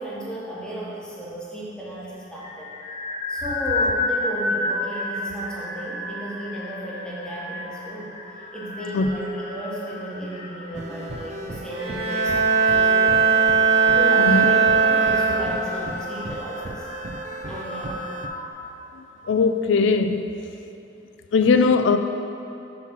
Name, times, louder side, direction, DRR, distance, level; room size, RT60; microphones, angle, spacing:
voice 1, 0.0-2.7 3.3-8.2 8.5-13.4 13.9-16.9 17.5-18.1 18.6-18.7 21.4-21.5, right 1 dB, 5° left, -7 dB, 1.0 m, -34 dB
sound 1, 2.4-18.5, left 2 dB, 35° left, 0.9 m, -32 dB
sound 2, 10.7-18.3, right 2 dB, 40° right, 0.4 m, -36 dB
Bowed string instrument, 11.7-15.8, right 5 dB, 70° right, 1.2 m, -19 dB
voice 2, 19.3-20.3 21.3-22.0, left 4 dB, 80° left, 8 dB, 0.4 m, -19 dB
7.2 x 3.1 x 5.8 m, 2.8 s
head